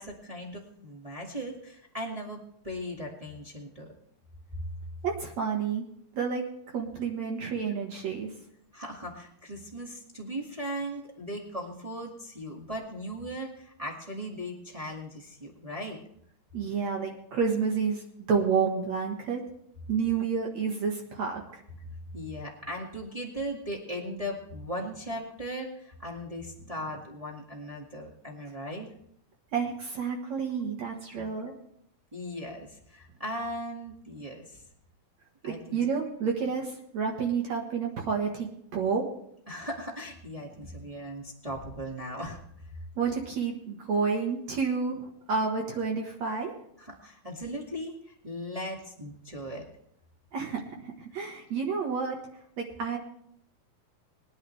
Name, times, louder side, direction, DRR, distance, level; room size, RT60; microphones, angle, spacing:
voice 1, 0.0-3.9 8.7-16.0 22.1-28.9 31.1-31.2 32.1-34.6 35.4-35.8 39.5-42.7 46.8-49.6, equal, 20° right, -2 dB, 1.0 m, -38 dB
voice 2, 5.0-5.8 6.2-6.4 6.7-8.3 16.5-18.0 18.3-19.4 19.9-21.4 29.5-31.5 35.4-39.1 43.0-46.5 50.3-52.2 52.6-53.0, right 5 dB, 60° right, 0 dB, 2.4 m, -30 dB
21.5 x 10.5 x 3.3 m, 0.70 s
omnidirectional pair, 4.2 m